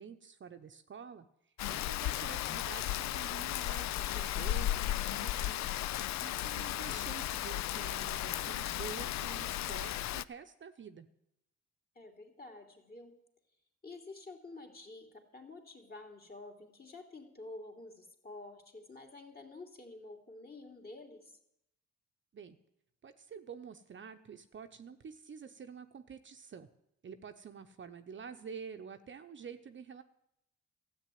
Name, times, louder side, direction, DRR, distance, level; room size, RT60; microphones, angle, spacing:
voice 1, 0.0-5.7 6.2-11.1 22.3-22.6 23.0-26.7 27.0-30.0, right 6 dB, 40° right, 7 dB, 0.8 m, -48 dB
Rain, 1.6-10.2, left 13 dB, 65° left, 0.5 m, -35 dB
voice 2, 11.9-13.2 13.8-21.3, left 2 dB, 30° left, 3 dB, 3.0 m, -50 dB
13.0 x 8.3 x 9.3 m, 0.81 s
cardioid pair, 90°, 30 cm